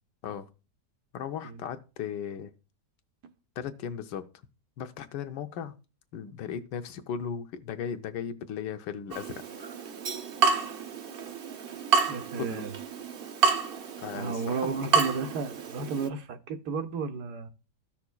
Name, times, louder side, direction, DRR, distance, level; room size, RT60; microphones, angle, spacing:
voice 1, 1.1-2.5 3.6-4.2 4.8-5.7 6.1-9.4 12.4-12.6 14.0-14.8, left 8 dB, 85° left, 1.4 m, -36 dB
Water tap faucet / Drip, 9.1-16.1, right 5 dB, 50° right, 0.7 m, -29 dB
voice 2, 12.0-12.7 14.2-17.5, right 5 dB, 70° right, 1.4 m, -33 dB
14.5 x 5.9 x 2.2 m
omnidirectional pair, 1.8 m